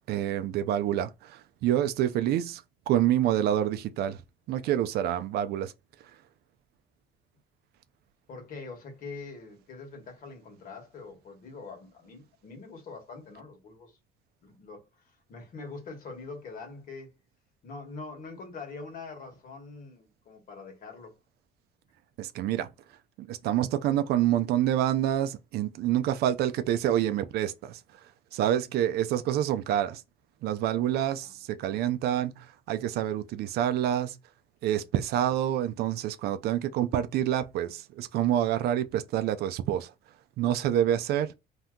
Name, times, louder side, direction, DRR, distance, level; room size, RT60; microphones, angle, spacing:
voice 1, 0.1-4.2 4.5-5.7 22.2-22.7 23.2-27.8 28.3-30.0 30.4-34.2 34.6-39.9 40.4-41.3, right 11 dB, 70° right, 0.4 m, -27 dB
voice 2, 8.3-14.0 14.4-17.2 17.6-21.2 31.2-31.3, left 4 dB, 55° left, 1.3 m, -44 dB
2.7 x 2.2 x 3.6 m
cardioid pair, 110°, 17 cm